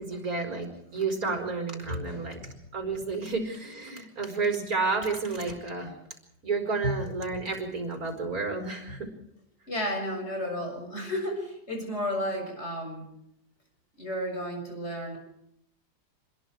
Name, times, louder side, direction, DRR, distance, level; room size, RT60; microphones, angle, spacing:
voice 1, 0.0-2.4 2.7-5.9 6.4-9.1, right 4 dB, 50° right, 4 dB, 5.1 m, -31 dB
voice 2, 1.9-2.6 6.8-7.0 8.9-9.0 9.7-13.1 14.0-15.2, equal, 35° left, 2 dB, 7.3 m, -33 dB
27.0 x 21.5 x 4.8 m, 0.76 s
omnidirectional pair, 2.0 m